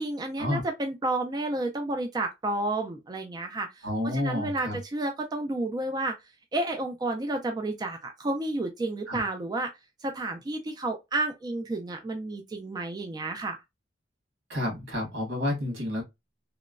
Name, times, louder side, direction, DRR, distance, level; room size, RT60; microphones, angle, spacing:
voice 1, 0.0-6.1 6.5-9.7 10.0-13.6, right 2 dB, 20° right, 0.3 m, -31 dB
voice 2, 3.8-4.8 9.1-9.3 14.5-16.0, left 1 dB, 80° right, 1.5 m, -30 dB
3.0 x 2.1 x 2.3 m
head